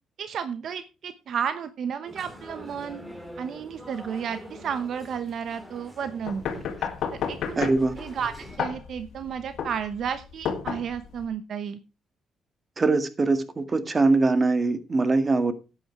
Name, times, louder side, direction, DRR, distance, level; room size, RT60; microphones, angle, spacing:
voice 1, 0.2-3.0 3.4-6.4 7.3-7.7 8.0-8.3 8.6-11.8, right 7 dB, 65° right, 1.0 m, -32 dB
sound 1, 2.1-8.6, equal, 10° right, 3.2 m, -45 dB
sound 2, 6.3-11.3, left 7 dB, 70° left, 2.2 m, -32 dB
voice 2, 7.6-7.9 12.8-15.5, right 3 dB, 30° right, 1.8 m, -22 dB
12.0 x 9.2 x 4.6 m
cardioid pair, 90°, 0 cm